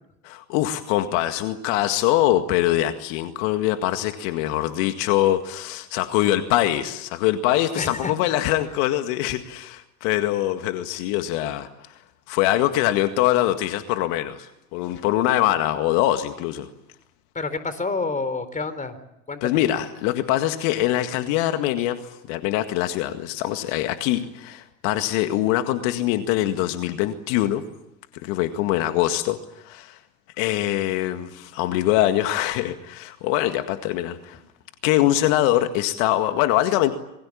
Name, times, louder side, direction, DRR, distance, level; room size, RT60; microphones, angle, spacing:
voice 1, 0.2-11.9 12.3-16.7 19.4-27.6 28.2-30.0 30.4-34.4 34.8-36.9, left 14 dB, 60° left, 8 dB, 2.0 m, -23 dB
voice 2, 7.8-8.1 17.3-19.0 19.3-19.6, left 3 dB, 15° left, 12 dB, 3.8 m, -28 dB
27.5 x 22.0 x 8.6 m, 0.84 s
hypercardioid pair, 80°, 43 cm